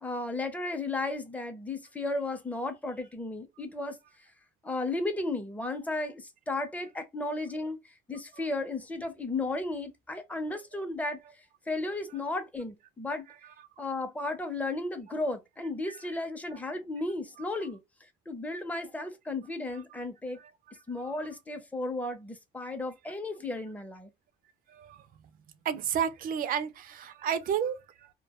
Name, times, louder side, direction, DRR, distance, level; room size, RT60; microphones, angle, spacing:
voice 1, 0.0-4.0 4.6-7.8 8.1-11.2 11.7-13.3 13.8-17.8 18.3-20.4 20.9-24.1, left 2 dB, 10° left, 0.6 m, -34 dB
voice 2, 24.7-25.3 25.6-28.1, right 8 dB, 60° right, 0.5 m, -32 dB
2.2 x 2.1 x 2.9 m
cardioid pair, 110°, 17 cm